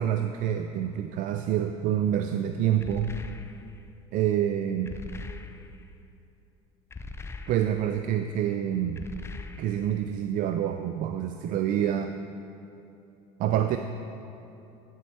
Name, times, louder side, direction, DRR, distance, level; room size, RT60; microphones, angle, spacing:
voice 1, 0.0-3.1 4.1-5.0 7.5-9.1 9.6-12.1 13.4-13.8, right 10 dB, 60° right, 7 dB, 0.5 m, -27 dB
sound 1, 2.8-3.9 4.9-5.9 6.9-8.0 9.0-10.0, left 3 dB, 15° left, 0.5 m, -41 dB
11.5 x 7.3 x 4.4 m, 2.8 s
supercardioid pair, 95°, 16 cm